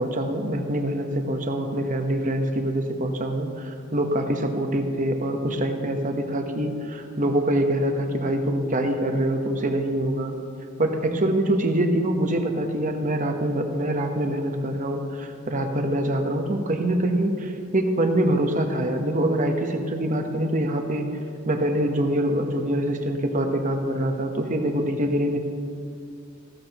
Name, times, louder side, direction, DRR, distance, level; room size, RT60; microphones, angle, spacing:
voice 1, 0.0-10.3 10.8-21.1 21.5-25.4, right 1 dB, 40° right, 4 dB, 1.0 m, -24 dB
14.5 x 13.5 x 3.0 m, 2.5 s
head